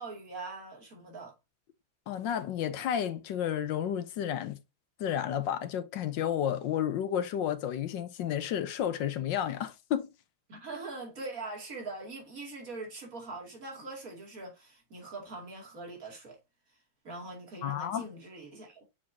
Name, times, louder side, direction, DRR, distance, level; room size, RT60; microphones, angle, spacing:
voice 1, 0.0-1.3 10.5-16.4 17.0-18.8, right 3 dB, 40° right, 2.8 m, -42 dB
voice 2, 2.1-4.6 5.0-10.1 17.6-18.0, left 9 dB, 70° left, 1.3 m, -31 dB
7.2 x 5.0 x 2.7 m
omnidirectional pair, 2.3 m